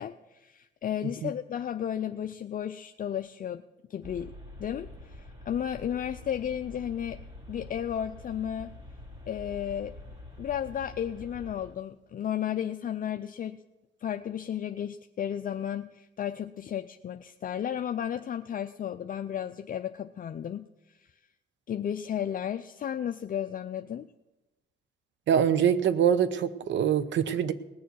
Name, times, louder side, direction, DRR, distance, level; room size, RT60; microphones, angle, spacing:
voice 1, 0.0-3.6 3.9-4.3 4.6-7.2 7.5-8.7 9.3-9.9 10.4-13.6 14.0-20.7 21.7-24.1, left 9 dB, 45° left, 8 dB, 0.5 m, -33 dB
sound 1, 4.0-11.7, left 1 dB, 30° right, 3.3 m, -46 dB
voice 2, 25.3-27.5, right 8 dB, 65° right, 14 dB, 0.8 m, -24 dB
19.0 x 7.0 x 6.3 m, 1.0 s
cardioid pair, 90°, 20 cm